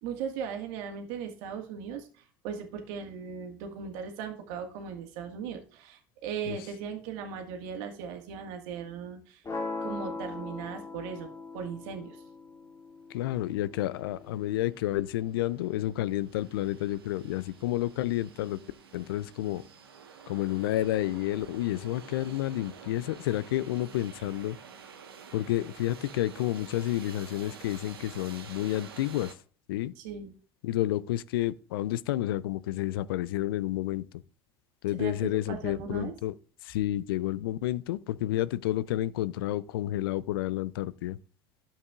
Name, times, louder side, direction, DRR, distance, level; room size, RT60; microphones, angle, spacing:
voice 1, 0.0-9.4 9.8-12.2 30.0-30.3 35.0-36.1, right 7 dB, 65° right, 1.7 m, -38 dB
sound 1, 9.4-15.5, left 3 dB, 25° left, 2.4 m, -41 dB
voice 2, 13.1-18.6 18.9-19.6 20.3-24.6 25.3-29.3 29.7-29.9 30.6-34.1 34.8-36.3 36.6-41.2, left 14 dB, 75° left, 0.4 m, -30 dB
sound 2, 13.4-13.5 13.7-29.3, right 6 dB, 90° right, 1.2 m, -49 dB
12.0 x 7.4 x 2.4 m
hypercardioid pair, 75°, 12 cm